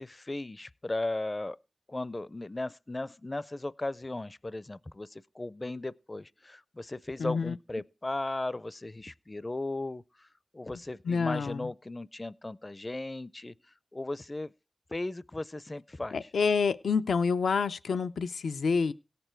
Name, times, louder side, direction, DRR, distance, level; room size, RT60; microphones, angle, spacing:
voice 1, 0.0-1.6 1.9-10.3 10.5-13.5 13.9-14.5 14.9-16.3, left 2 dB, 35° left, 0.5 m, -36 dB
voice 2, 7.2-7.5 11.1-11.7 16.1-18.9, left 5 dB, 90° left, 0.5 m, -28 dB
17.0 x 6.8 x 4.5 m
cardioid pair, 40°, 0 cm